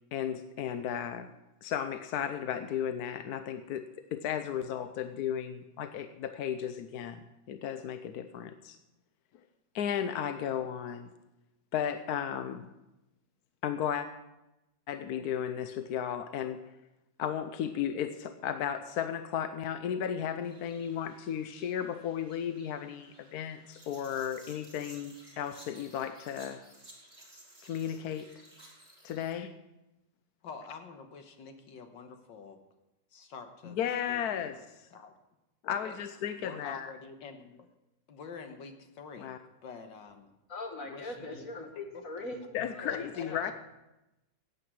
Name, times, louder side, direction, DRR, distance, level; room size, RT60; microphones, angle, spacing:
voice 1, 0.1-1.3 1.6-3.8 4.1-7.2 7.5-8.8 9.7-11.1 11.7-12.7 13.6-14.1 14.9-16.6 17.2-26.6 27.6-28.3 29.0-29.5 33.7-34.9 35.6-36.9 39.2-39.4 42.5-43.5, left 9 dB, 65° left, 9 dB, 1.1 m, -34 dB
sound 1, 20.4-29.3, right 1 dB, 20° right, 5.3 m, -56 dB
voice 2, 30.4-32.6 33.1-33.8 34.1-34.6 34.9-35.1 35.8-36.0 36.4-37.7 38.1-39.3 39.6-40.3 40.9-41.5 41.9-42.0 42.9-43.5, left 5 dB, 85° left, 6 dB, 1.9 m, -47 dB
voice 3, 40.5-42.4 42.7-43.5, left 2 dB, 50° left, 3 dB, 2.2 m, -41 dB
14.5 x 9.5 x 6.2 m, 0.94 s
omnidirectional pair, 2.0 m